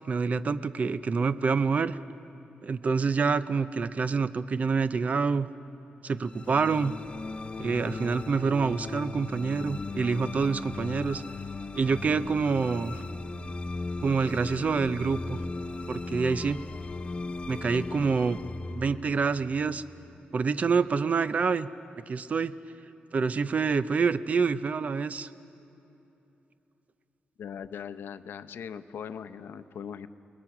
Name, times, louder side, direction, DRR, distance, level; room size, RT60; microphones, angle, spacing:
voice 1, 0.1-2.0 2.6-5.5 6.0-7.0 7.6-11.2 11.7-13.0 14.0-15.4 15.9-16.6 17.5-18.4 18.7-19.8 20.3-21.7 22.1-22.5 23.1-25.3, right 5 dB, 40° right, 13 dB, 0.6 m, -27 dB
sound 1, 6.2-20.6, left 3 dB, 30° left, 0.6 m, -38 dB
voice 2, 27.4-30.1, left 7 dB, 85° left, 11 dB, 0.7 m, -40 dB
29.0 x 20.5 x 6.0 m, 3.0 s
wide cardioid pair, 150°, 4 cm